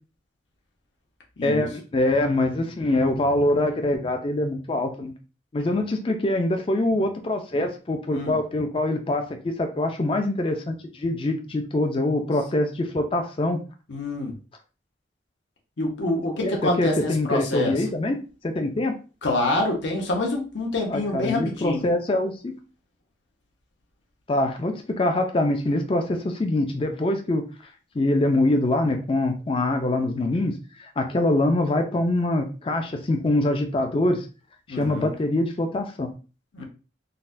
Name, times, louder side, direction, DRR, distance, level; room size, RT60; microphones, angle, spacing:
voice 1, 1.4-5.1 5.5-13.6 16.4-18.2 18.4-18.9 20.9-22.6 24.3-27.4 28.0-30.5 30.8-34.2 34.7-36.1, left 1 dB, 30° left, 4 dB, 0.4 m, -24 dB
voice 2, 13.9-14.3 15.8-17.8 19.2-21.8 34.7-35.1 36.5-36.6, left 2 dB, 75° left, 0 dB, 0.9 m, -26 dB
4.0 x 2.2 x 2.6 m, 0.34 s
head